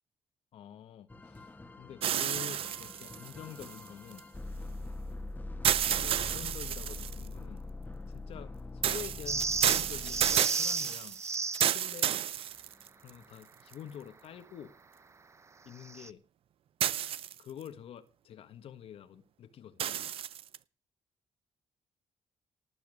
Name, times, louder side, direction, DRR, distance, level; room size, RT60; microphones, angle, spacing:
voice 1, 0.5-4.2 5.9-7.6 8.1-11.2 11.6-12.1 13.0-14.7 15.6-16.2 17.4-20.0, left 9 dB, 75° left, 1.5 m, -47 dB
sound 1, 1.1-10.9 12.4-12.6 13.1-13.2, left 2 dB, 15° left, 1.7 m, -43 dB
sound 2, 2.0-4.2 5.6-7.3 8.8-13.1 13.7-13.8 16.8-17.6 19.8-20.6, right 10 dB, 70° right, 0.6 m, -31 dB
sound 3, 9.3-11.8 15.8-16.1, right 4 dB, 30° right, 0.8 m, -33 dB
19.0 x 7.2 x 8.4 m
cardioid pair, 90°, 10 cm